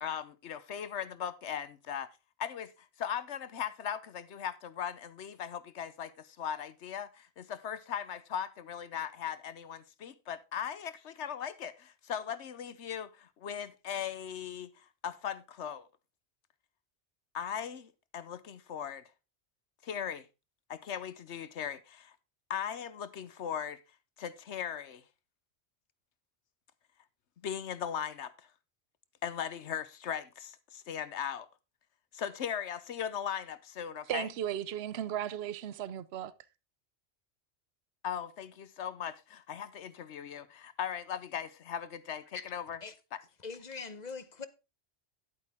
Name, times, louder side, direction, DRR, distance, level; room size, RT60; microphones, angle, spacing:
voice 1, 0.0-2.1 2.4-2.7 3.0-6.1 6.4-7.1 7.5-11.7 12.1-13.1 13.4-14.7 15.0-15.8 17.3-17.8 18.1-19.0 19.9-20.2 20.9-21.8 22.5-23.8 24.2-25.0 27.4-28.3 29.2-30.2 30.9-31.4 32.2-34.3 38.0-39.1 39.5-40.4 40.8-42.8, left 8 dB, 80° left, 1.2 m, -38 dB
voice 2, 34.1-36.3, right 10 dB, 70° right, 0.9 m, -35 dB
voice 3, 43.4-44.5, left 5 dB, 40° left, 1.0 m, -42 dB
11.0 x 8.8 x 3.4 m
omnidirectional pair, 1.2 m